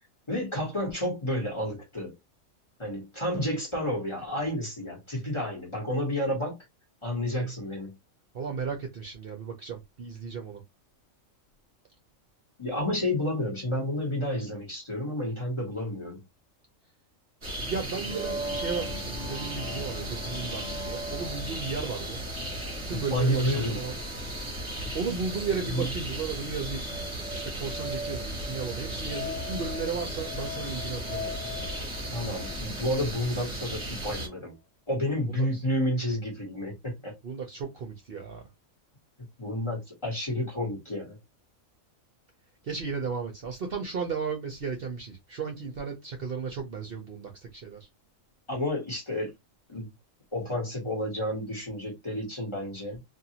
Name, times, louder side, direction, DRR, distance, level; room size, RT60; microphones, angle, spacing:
voice 1, 0.3-2.1 2.8-6.6 7.0-7.9 12.6-16.2 22.9-23.8 25.7-25.9 32.1-34.5 34.9-37.1 39.4-41.2 48.5-49.3 49.7-49.9 50.3-53.0, left 1 dB, 25° left, 1.3 m, -30 dB
voice 2, 8.3-10.6 17.7-22.2 22.8-24.0 24.9-26.9 27.3-31.4 35.3-35.6 37.2-38.4 42.6-47.9, right 5 dB, 55° right, 0.8 m, -35 dB
sound 1, 17.4-34.3, right 1 dB, 25° right, 1.1 m, -36 dB
sound 2, 17.9-33.5, left 1 dB, 65° left, 1.1 m, -41 dB
2.7 x 2.5 x 2.8 m
omnidirectional pair, 1.4 m